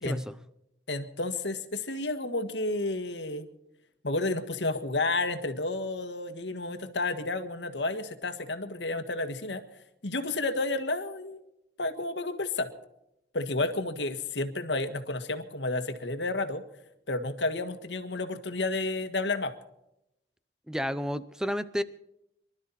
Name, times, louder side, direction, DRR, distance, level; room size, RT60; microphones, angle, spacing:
voice 1, 0.9-3.5 4.0-9.6 10.0-11.4 11.8-12.7 13.3-16.6 17.1-19.5, left 2 dB, 90° left, 9 dB, 1.7 m, -31 dB
voice 2, 20.7-21.8, equal, 5° right, 14 dB, 0.7 m, -31 dB
24.5 x 12.5 x 4.3 m, 0.83 s
head